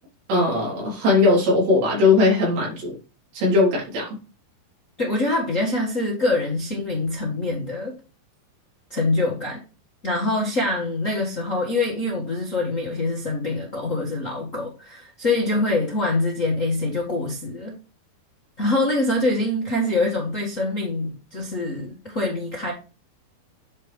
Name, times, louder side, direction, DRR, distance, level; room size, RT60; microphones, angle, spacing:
voice 1, 0.3-3.0 3.3-4.1, left 3 dB, 90° right, -4 dB, 5.8 m, -19 dB
voice 2, 5.0-7.9 8.9-9.6 10.0-17.8 18.6-22.7, left 2 dB, 35° left, -2 dB, 1.2 m, -24 dB
9.8 x 4.8 x 3.5 m, 0.33 s
omnidirectional pair, 4.2 m